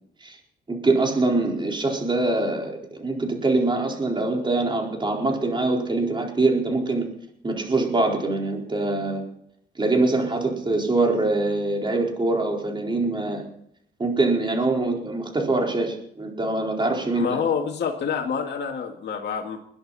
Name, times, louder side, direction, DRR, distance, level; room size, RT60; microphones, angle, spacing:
voice 1, 0.7-7.1 7.4-9.2 9.7-13.4 14.0-17.4, right 2 dB, 25° right, 0 dB, 4.5 m, -24 dB
voice 2, 17.1-19.6, left 6 dB, 60° left, 0 dB, 2.1 m, -27 dB
21.0 x 10.5 x 4.2 m, 0.71 s
cardioid pair, 90°, 20 cm